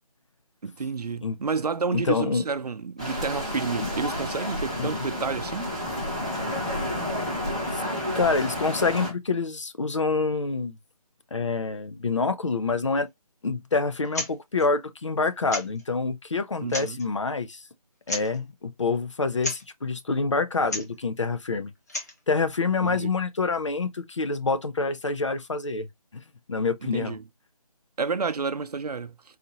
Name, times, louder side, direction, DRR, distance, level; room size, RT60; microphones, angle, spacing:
voice 1, 0.6-5.7 16.6-17.0 22.8-23.1 26.8-27.2 28.0-29.2, right 5 dB, 85° right, 0.6 m, -30 dB
voice 2, 1.9-2.4 3.8-3.9 4.8-5.1 7.7-7.8 8.1-10.8 11.3-13.1 13.4-17.6 18.1-21.7 22.3-25.9 26.1-26.2 26.5-27.2, left 4 dB, 50° left, 0.6 m, -27 dB
sound 1, 3.0-9.1, left 1 dB, 10° right, 0.5 m, -30 dB
sound 2, 14.0-14.3 14.6-14.7 15.5-15.8 16.6-17.1 18.1-18.4 19.4-19.6 20.6-20.9 21.7-22.2, left 1 dB, 25° left, 0.9 m, -32 dB
4.1 x 2.6 x 2.8 m
figure-of-eight pair, 175°, 20 cm